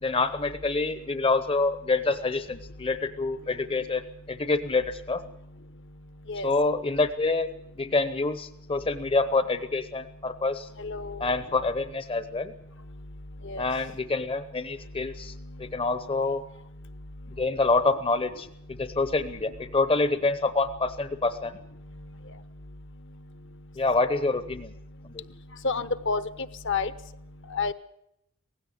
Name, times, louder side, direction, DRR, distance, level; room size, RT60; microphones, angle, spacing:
voice 1, 0.0-4.0 4.3-5.2 6.4-7.5 7.8-10.7 11.2-12.5 13.6-15.3 15.6-16.4 17.4-18.5 18.8-21.6 23.8-24.7 25.0-25.2, left 3 dB, 25° left, 11 dB, 0.8 m, -26 dB
voice 2, 10.8-11.3 13.4-13.7 25.6-26.2 26.6-26.9 27.5-27.7, left 4 dB, 55° left, 13 dB, 1.1 m, -29 dB
18.0 x 16.0 x 9.9 m, 0.77 s
head